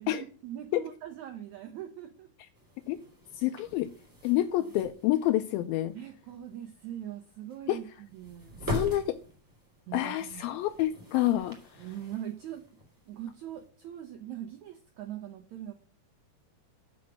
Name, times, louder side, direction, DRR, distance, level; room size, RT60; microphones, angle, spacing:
voice 1, 0.0-2.3 5.9-7.9 8.1-8.6 9.9-10.5 11.8-12.6 13.1-15.7, right 11 dB, 75° right, 1.7 m, -41 dB
sound 1, 2.5-13.7, left 1 dB, 5° right, 1.8 m, -43 dB
voice 2, 3.3-3.9 4.2-5.9 7.7-7.8 8.7-9.2 9.9-11.9, left 14 dB, 80° left, 2.3 m, -28 dB
7.3 x 6.1 x 6.0 m
omnidirectional pair, 4.4 m